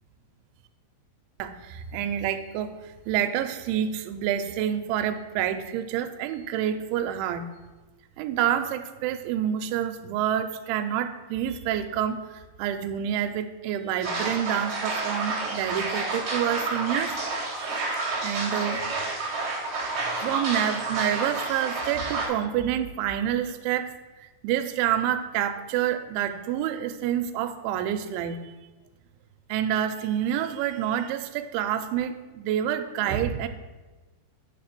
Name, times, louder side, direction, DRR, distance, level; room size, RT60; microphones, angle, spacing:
voice 1, 1.4-2.8 3.1-7.4 8.2-17.4 18.2-18.8 20.2-23.9 24.2-28.5 29.5-33.5, right 10 dB, 85° right, 8 dB, 2.9 m, -28 dB
sound 1, 14.0-22.3, right 3 dB, 35° right, 2.6 m, -30 dB
10.0 x 3.4 x 6.5 m, 1.2 s
omnidirectional pair, 5.2 m